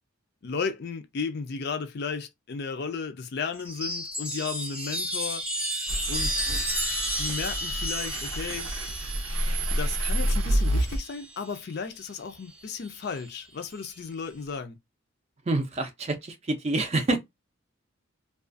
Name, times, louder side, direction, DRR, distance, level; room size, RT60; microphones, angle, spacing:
voice 1, 0.4-5.4 6.1-6.3 7.1-8.7 9.8-14.8, left 5 dB, 50° left, 0.4 m, -34 dB
Chime, 3.6-11.4 12.6-13.2, equal, 5° right, 0.8 m, -33 dB
sound 1, 5.9-11.0, right 1 dB, 80° right, 0.6 m, -29 dB
voice 2, 15.5-17.2, right 2 dB, 30° right, 0.4 m, -27 dB
2.4 x 2.3 x 2.5 m
head